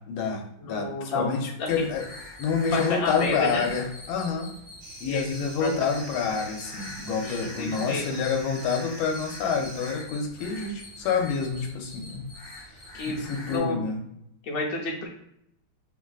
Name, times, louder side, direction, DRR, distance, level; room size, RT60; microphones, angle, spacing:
voice 1, 0.1-2.1 2.4-4.5 5.0-12.3 12.7-14.0, left 5 dB, 85° left, 3 dB, 1.4 m, -28 dB
voice 2, 0.6-1.3 1.6-1.7 2.7-3.7 5.0-5.2 5.6-5.7 7.2-8.1 12.9-13.9 14.4-15.1, left 3 dB, 60° left, -3 dB, 1.0 m, -30 dB
sound 1, 1.6-13.6, left 2 dB, 20° left, 0.5 m, -43 dB
sound 2, 4.8-10.0, right 2 dB, 75° right, 1.1 m, -45 dB
3.4 x 2.3 x 2.3 m, 0.76 s
omnidirectional pair, 2.3 m